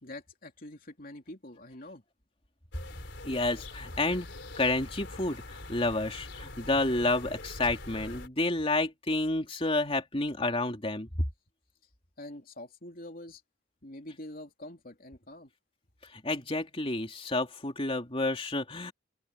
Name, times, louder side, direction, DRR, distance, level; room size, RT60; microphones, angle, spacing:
voice 1, 0.0-2.0 12.2-13.4 13.8-15.5, left 1 dB, 50° left, 3.2 m, -45 dB
sound 1, 2.7-8.3, left 2 dB, 70° left, 4.4 m, -44 dB
voice 2, 3.2-11.1 16.1-18.9, left 2 dB, 30° left, 3.1 m, -30 dB
open air
head